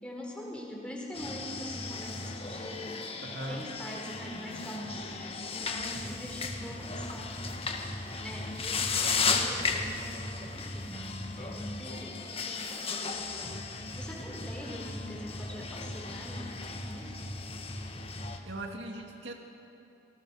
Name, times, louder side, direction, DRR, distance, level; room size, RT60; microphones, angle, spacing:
voice 1, 0.0-3.0 3.3-7.4 8.2-10.2 10.5-17.3, equal, 5° left, -2 dB, 4.5 m, -43 dB
sound 1, 1.1-18.4, left 4 dB, 35° left, 1.6 m, -35 dB
voice 2, 3.2-3.7 18.4-19.3, right 1 dB, 80° right, 2 dB, 2.3 m, -39 dB
27.5 x 19.5 x 6.4 m, 2.8 s
head